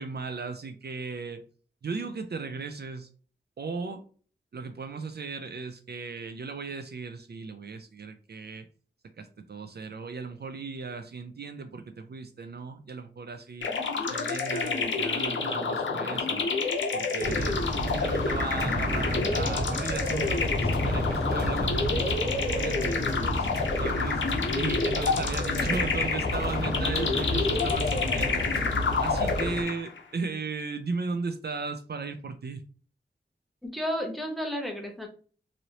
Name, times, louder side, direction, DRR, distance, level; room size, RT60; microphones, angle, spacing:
voice 1, 0.0-1.4 1.8-3.1 3.6-4.1 4.5-8.7 9.2-13.7 14.1-16.5 16.9-23.5 23.8-24.2 24.6-28.5 29.0-32.7, right 4 dB, 60° right, 7 dB, 0.4 m, -36 dB
sound 1, 13.6-30.0, left 4 dB, 90° left, 0.6 m, -29 dB
sound 2, 17.2-29.6, left 1 dB, 60° left, 1.2 m, -31 dB
voice 2, 33.6-35.1, equal, ahead, 2 dB, 0.8 m, -32 dB
3.0 x 2.7 x 2.7 m, 0.41 s
wide cardioid pair, 75°, 19 cm